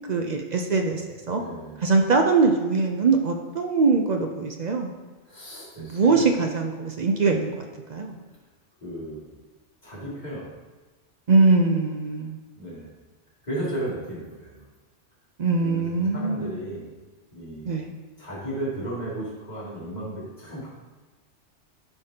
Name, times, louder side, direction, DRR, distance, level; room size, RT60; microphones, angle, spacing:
voice 1, 0.1-1.4 1.8-4.9 5.8-8.2 11.3-12.4 15.4-16.6 17.7-17.9, right 4 dB, 50° right, 3 dB, 0.5 m, -22 dB
voice 2, 1.3-1.9 5.3-6.2 8.8-9.3 9.8-10.5 12.6-12.9 13.4-14.6 15.6-16.9 17.3-17.8 18.2-20.7, right 1 dB, 35° left, -8 dB, 2.5 m, -34 dB
11.5 x 5.0 x 2.8 m, 1.3 s
omnidirectional pair, 1.2 m